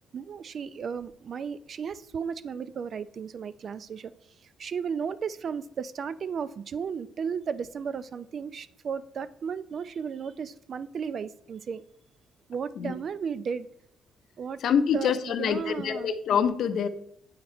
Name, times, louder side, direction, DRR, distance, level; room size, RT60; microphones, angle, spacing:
voice 1, 0.1-4.1 4.4-11.8 12.5-13.7 14.4-14.6 14.9-16.1, right 6 dB, 55° right, 15 dB, 0.4 m, -34 dB
voice 2, 14.6-16.9, left 7 dB, 70° left, 10 dB, 0.6 m, -25 dB
8.4 x 3.9 x 4.4 m, 0.70 s
cardioid pair, 90°, 0 cm